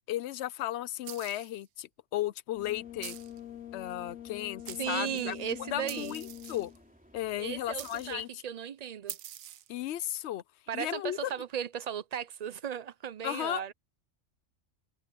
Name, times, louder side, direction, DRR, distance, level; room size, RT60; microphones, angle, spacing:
voice 1, 0.1-3.2 3.7-6.7 7.1-8.4 9.7-10.4 10.7-11.3 13.2-13.7, left 13 dB, 65° left, 0.8 m, -35 dB
sound 1, 1.0-1.6 3.0-3.4 4.3-4.4 4.7-5.3 5.9-6.8 7.8-8.2 9.1-9.8, right 12 dB, 85° right, 1.1 m, -45 dB
Brass instrument, 2.5-6.9, left 11 dB, 80° left, 1.2 m, -45 dB
sound 2, 2.6-8.3, equal, 5° right, 3.0 m, -60 dB
voice 2, 4.8-6.2 7.4-9.2 10.7-13.7, right 9 dB, 50° right, 0.5 m, -36 dB
omnidirectional pair, 1.4 m